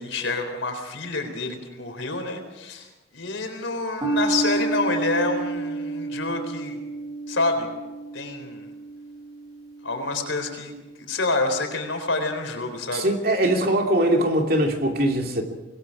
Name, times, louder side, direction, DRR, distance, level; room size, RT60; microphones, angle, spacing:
voice 1, 0.0-2.9 3.1-6.8 7.3-7.7 8.1-8.7 9.8-10.7 11.1-13.1, left 3 dB, 85° left, 4.0 m, -27 dB
sound 1, 4.0-10.7, right 3 dB, 20° right, 3.6 m, -30 dB
voice 2, 12.9-15.4, right 1 dB, 50° right, 2.7 m, -21 dB
26.0 x 21.0 x 4.9 m
head